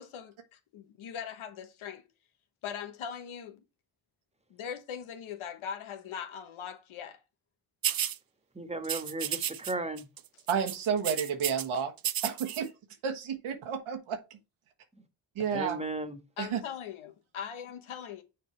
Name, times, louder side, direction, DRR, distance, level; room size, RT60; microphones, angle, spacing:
voice 1, 0.0-2.0 2.6-3.6 4.5-7.2 16.4-18.2, left 8 dB, 85° left, 1.1 m, -40 dB
sound 1, 7.8-8.2 8.8-9.7 10.0-10.2 10.5-11.6 12.0-12.6, right 10 dB, 50° right, 0.6 m, -32 dB
voice 2, 8.5-10.1 14.9-15.0 15.5-16.2, right 2 dB, 15° right, 1.5 m, -35 dB
voice 3, 10.5-11.9 12.2-12.7 13.0-14.2 15.3-15.8 16.4-16.6, right 7 dB, 85° right, 1.4 m, -31 dB
6.6 x 4.4 x 4.4 m
supercardioid pair, 50°, 47 cm